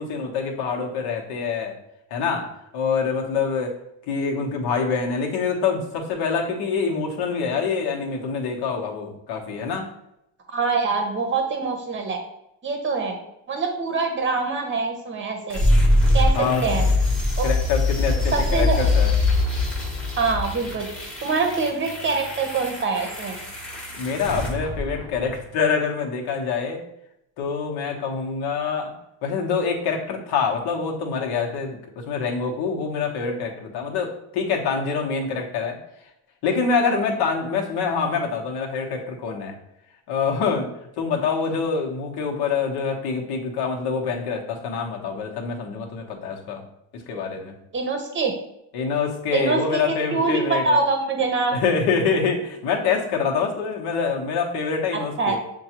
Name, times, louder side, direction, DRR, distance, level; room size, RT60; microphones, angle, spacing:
voice 1, 0.0-1.7 2.1-2.5 2.7-3.7 4.1-9.9 16.3-16.7 17.4-19.1 24.0-26.8 27.4-28.9 29.2-35.8 36.4-39.5 40.1-40.7 41.0-46.6 46.9-47.5 48.7-50.6 51.5-55.4, left 5 dB, 65° left, 1 dB, 1.0 m, -25 dB
voice 2, 10.5-12.2 12.6-13.1 13.5-15.6 16.1-16.3 16.6-16.8 17.4-17.5 18.3-18.8 20.2-20.9 21.2-23.3 47.7-48.3 49.3-51.6 54.9-55.4, right 4 dB, 30° right, 4 dB, 0.8 m, -24 dB
sound 1, 15.5-25.5, left 2 dB, ahead, 1.0 m, -23 dB
6.7 x 2.3 x 2.9 m, 0.80 s
cardioid pair, 130°, 42 cm